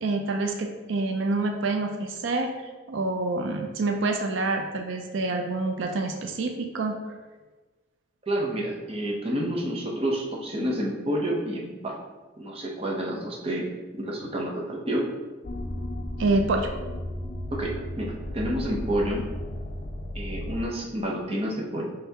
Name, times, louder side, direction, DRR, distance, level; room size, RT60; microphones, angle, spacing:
voice 1, 0.0-2.5 2.9-7.0 16.2-16.7, right 3 dB, 90° right, 4 dB, 0.5 m, -27 dB
voice 2, 8.3-12.0 12.4-15.1 17.5-19.3 20.1-21.9, right 1 dB, 30° right, -2 dB, 0.7 m, -29 dB
sound 1, 15.4-20.6, left 1 dB, 50° left, 0.5 m, -34 dB
5.6 x 3.3 x 2.8 m, 1.3 s
head